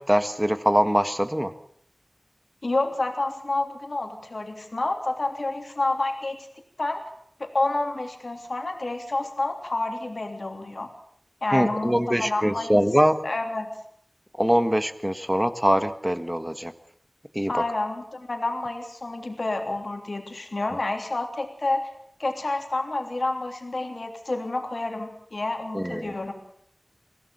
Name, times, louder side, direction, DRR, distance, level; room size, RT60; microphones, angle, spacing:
voice 1, 0.0-1.5 11.5-13.2 14.4-16.7 17.3-17.5 25.7-26.1, equal, 10° right, 10 dB, 1.5 m, -23 dB
voice 2, 2.6-6.5 6.8-7.0 7.4-10.9 11.4-12.7 13.2-13.8 17.5-21.9 22.2-26.3, left 2 dB, 75° left, 4 dB, 3.3 m, -29 dB
23.0 x 16.5 x 7.2 m, 0.65 s
wide cardioid pair, 50°, 0 cm